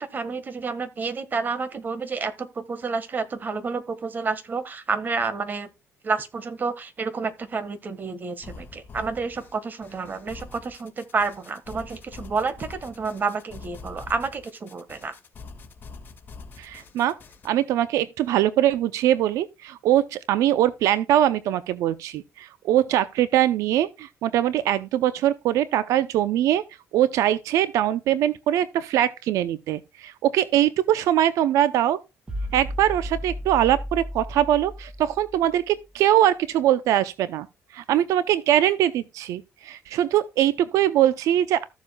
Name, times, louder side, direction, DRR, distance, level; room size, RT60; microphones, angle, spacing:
voice 1, 0.0-5.7 6.0-15.1, right 4 dB, 35° right, 1.5 m, -29 dB
sound 1, 8.4-17.5, left 4 dB, 40° left, 2.0 m, -44 dB
voice 2, 16.6-17.1 17.4-26.6 26.9-32.0 32.5-37.5 37.7-41.7, right 12 dB, 85° right, 0.6 m, -22 dB
sound 2, 32.3-35.7, equal, 15° right, 1.8 m, -34 dB
14.5 x 7.2 x 2.3 m
cardioid pair, 115°, 5 cm